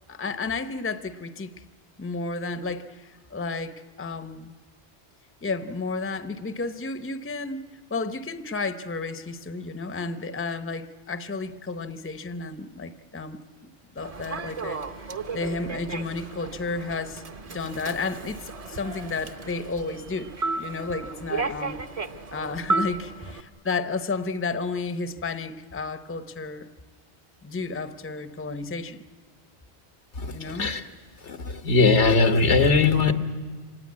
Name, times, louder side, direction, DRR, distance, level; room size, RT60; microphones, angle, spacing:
voice 1, 0.1-1.5 2.0-4.5 5.4-14.8 15.3-17.2 17.5-20.3 20.6-21.8 22.3-26.7 27.4-29.0 30.3-30.7, left 3 dB, 15° left, 10 dB, 0.6 m, -32 dB
Human voice / Subway metro underground, 14.0-23.4, right 3 dB, 35° right, 0.8 m, -33 dB
voice 2, 30.2-30.8 31.2-33.1, left 4 dB, 90° left, 7 dB, 1.6 m, -20 dB
25.5 x 19.0 x 9.5 m, 1.4 s
omnidirectional pair, 1.1 m